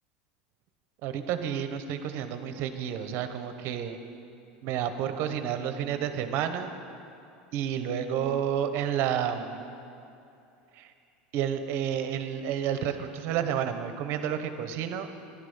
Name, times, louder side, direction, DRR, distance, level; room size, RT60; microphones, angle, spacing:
voice 1, 1.0-4.0 4.6-6.7 7.5-9.6 10.7-10.9 11.3-15.1, right 9 dB, 55° right, 8 dB, 1.1 m, -30 dB
14.5 x 11.5 x 5.7 m, 2.7 s
supercardioid pair, 125°, 5 cm